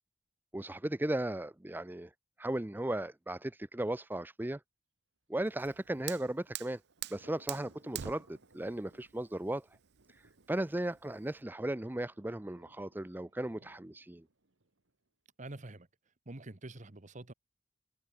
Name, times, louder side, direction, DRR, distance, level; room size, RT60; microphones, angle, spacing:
voice 1, 0.5-2.1 2.4-4.6 5.3-6.8 7.1-9.7 10.1-14.2, right 1 dB, 10° right, 0.5 m, -36 dB
Fire, 5.4-11.4, right 12 dB, 60° right, 0.4 m, -46 dB
Thunder, 5.8-15.1, right 2 dB, 85° right, 2.3 m, -64 dB
voice 2, 15.4-15.9 16.3-17.3, right 2 dB, 40° right, 1.3 m, -46 dB
head